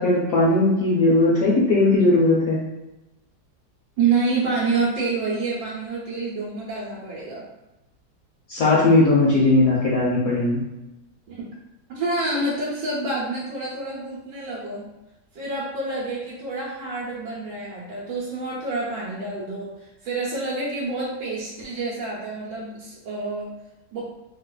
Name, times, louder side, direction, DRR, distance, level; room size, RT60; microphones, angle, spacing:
voice 1, 0.0-2.6 8.5-10.6, left 2 dB, 70° left, -5 dB, 0.8 m, -18 dB
voice 2, 4.0-7.4 11.3-11.4 11.9-14.8 15.3-23.5 23.9-24.0, right 3 dB, 75° right, -8 dB, 1.4 m, -27 dB
3.8 x 2.4 x 2.2 m, 0.97 s
omnidirectional pair, 1.9 m